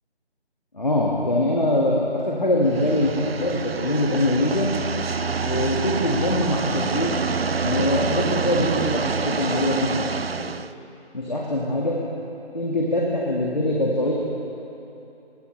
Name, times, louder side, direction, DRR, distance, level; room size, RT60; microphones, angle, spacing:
voice 1, 0.7-4.7 5.4-7.2 7.6-9.9 10.3-10.5 11.1-12.0 12.5-14.1, left 1 dB, 40° left, -3 dB, 1.7 m, -23 dB
sound 1, 2.6-10.7, right 5 dB, 60° right, 0.5 m, -27 dB
22.0 x 19.5 x 3.2 m, 3.0 s
figure-of-eight pair, 175°, 33 cm